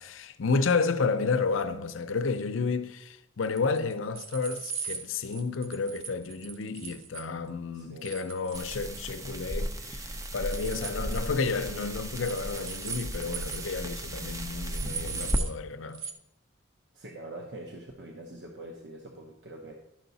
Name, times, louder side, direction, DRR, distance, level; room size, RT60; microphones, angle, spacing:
voice 1, 0.0-16.0, left 4 dB, 85° left, 0.6 m, -31 dB
voice 2, 1.0-1.5 7.7-8.2 10.8-11.1 16.9-19.7, right 1 dB, 60° right, 0.9 m, -44 dB
sound 1, 3.6-7.3 8.0-9.2 9.5-9.9 10.1-11.2 12.1-13.7 14.0-14.1 14.3-14.4 14.7-15.5 15.9-16.1, right 7 dB, 85° right, 0.8 m, -39 dB
sound 2, 8.5-15.4, equal, 15° right, 0.5 m, -35 dB
11.5 x 5.7 x 4.0 m
head